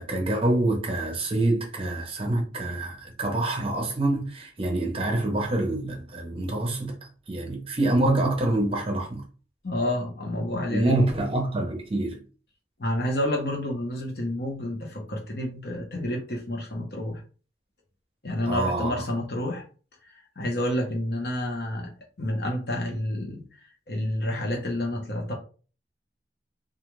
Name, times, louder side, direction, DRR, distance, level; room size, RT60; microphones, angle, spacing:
voice 1, 0.0-7.0 7.3-9.2 10.7-12.2 18.4-19.1, right 2 dB, 30° right, 0.6 m, -26 dB
voice 2, 9.6-11.1 12.8-17.2 18.2-19.6 20.0-21.9 22.2-23.4 23.9-25.3, left 1 dB, 60° left, 0.8 m, -29 dB
2.4 x 2.3 x 3.0 m
head